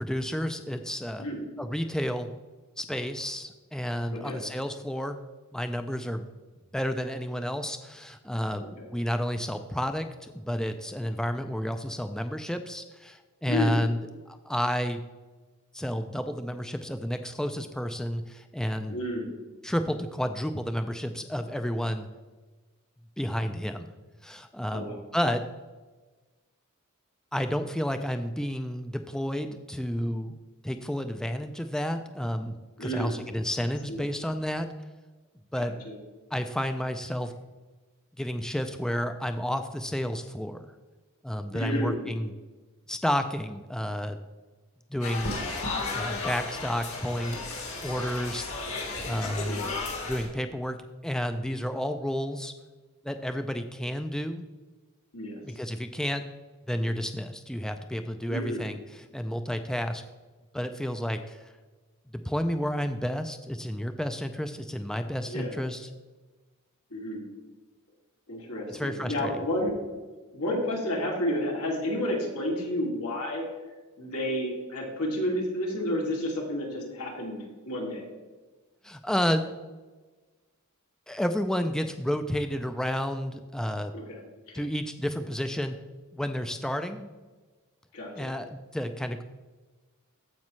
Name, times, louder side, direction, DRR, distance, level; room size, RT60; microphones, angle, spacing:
voice 1, 0.0-1.3 1.6-2.3 2.8-5.2 5.5-6.3 6.7-14.0 14.3-15.0 15.7-19.0 19.6-22.1 23.2-23.9 24.2-24.9 25.1-25.4 27.3-30.4 30.6-32.6 32.8-34.7 35.5-35.7 36.3-37.3 38.2-40.7 41.2-42.3 42.9-44.2 44.9-45.3 45.9-47.4 47.8-49.7 50.1-50.8 51.0-52.5 53.0-54.5 55.4-56.2 56.7-60.0 60.5-61.5 62.2-65.9 68.7-69.3 78.8-79.4 81.1-83.9 84.5-85.8 86.1-87.1 88.2-89.2, equal, 5° left, 8 dB, 0.3 m, -31 dB
voice 2, 18.9-19.2 24.7-25.0 32.8-33.1 33.9-34.0 35.6-35.9 41.5-42.0 49.5-49.8 55.1-55.4 58.3-58.6 65.3-65.5 66.9-67.2 68.3-69.8 70.3-73.4 74.0-78.0 83.9-84.0 84.5-84.6 87.9-88.3, left 1 dB, 85° left, -2 dB, 2.5 m, -31 dB
sound 1, 45.0-50.3, left 3 dB, 70° left, 2.4 m, -34 dB
14.5 x 5.2 x 3.1 m, 1.2 s
head